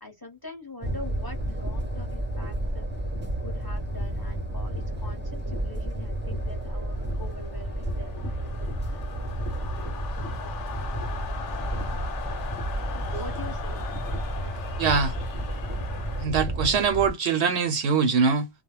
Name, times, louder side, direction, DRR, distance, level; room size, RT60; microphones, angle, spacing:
voice 1, 0.0-2.9 3.4-8.1 13.1-13.8, left 2 dB, 20° left, 0.8 m, -43 dB
sound 1, 0.8-17.1, right 1 dB, 10° right, 0.6 m, -31 dB
sound 2, 6.4-16.3, left 7 dB, 80° left, 1.0 m, -40 dB
voice 2, 14.8-15.1 16.2-18.5, right 5 dB, 70° right, 0.9 m, -23 dB
2.4 x 2.0 x 3.0 m
omnidirectional pair, 1.2 m